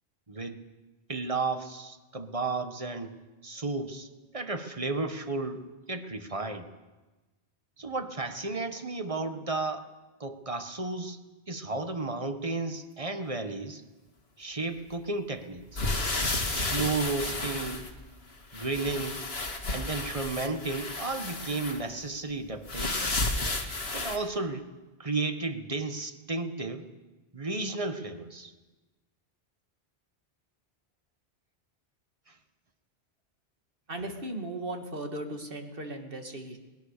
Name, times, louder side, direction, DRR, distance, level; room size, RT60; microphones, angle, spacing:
voice 1, 0.3-0.6 1.1-3.1 3.4-4.1 4.3-6.7 7.8-9.9 10.2-11.2 11.5-13.8 14.4-15.9 16.4-17.9 18.5-19.2 19.7-23.1 23.9-24.7 25.0-26.9 27.3-28.5 32.3-32.4, right 3 dB, 35° right, 7 dB, 1.6 m, -33 dB
sound 1, 15.7-18.2 18.5-21.8 22.7-24.2, left 2 dB, 75° left, 2.3 m, -32 dB
voice 2, 33.9-36.6, right 1 dB, 60° right, 4 dB, 2.6 m, -37 dB
21.5 x 20.5 x 6.8 m, 1.2 s
omnidirectional pair, 1.1 m